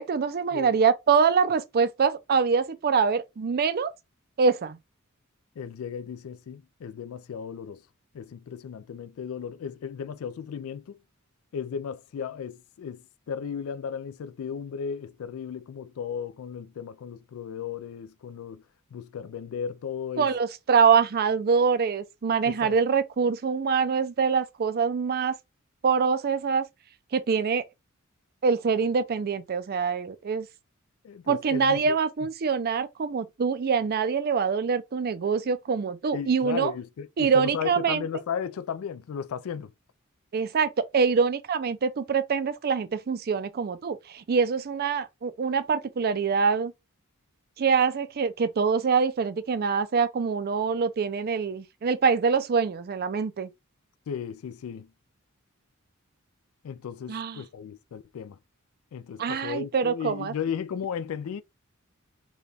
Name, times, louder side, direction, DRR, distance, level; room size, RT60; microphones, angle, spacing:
voice 1, 0.0-3.9 4.4-4.8 20.2-25.3 25.8-26.6 27.1-27.6 28.4-30.5 31.3-36.7 37.2-38.0 40.3-46.7 47.6-53.5 57.1-57.4 59.2-60.3, right 5 dB, 45° right, 0.4 m, -24 dB
voice 2, 5.6-7.8 8.1-11.0 11.5-18.6 18.9-20.3 22.4-22.8 31.0-32.0 36.1-39.7 54.1-54.9 56.6-58.4 58.9-61.4, left 7 dB, 70° left, 0.3 m, -35 dB
4.0 x 2.3 x 3.3 m
head